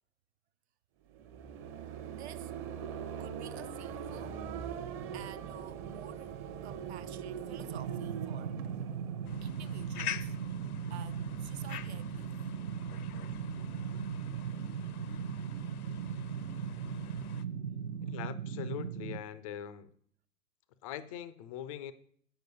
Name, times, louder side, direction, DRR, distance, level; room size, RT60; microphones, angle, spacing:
sound 1, 1.1-10.1, right 8 dB, 30° right, 0.9 m, -42 dB
voice 1, 2.1-2.5 3.2-4.4 5.1-6.3 6.6-8.6 9.4-10.4 10.9-12.3 18.0-18.2, right 11 dB, 45° right, 0.5 m, -50 dB
sound 2, 7.7-19.2, right 7 dB, 70° right, 0.9 m, -38 dB
sound 3, 9.2-17.5, left 10 dB, 75° left, 0.7 m, -46 dB
voice 2, 18.0-19.9 20.8-21.9, left 10 dB, 25° left, 0.4 m, -42 dB
7.9 x 6.7 x 5.3 m
hypercardioid pair, 110°, 45 cm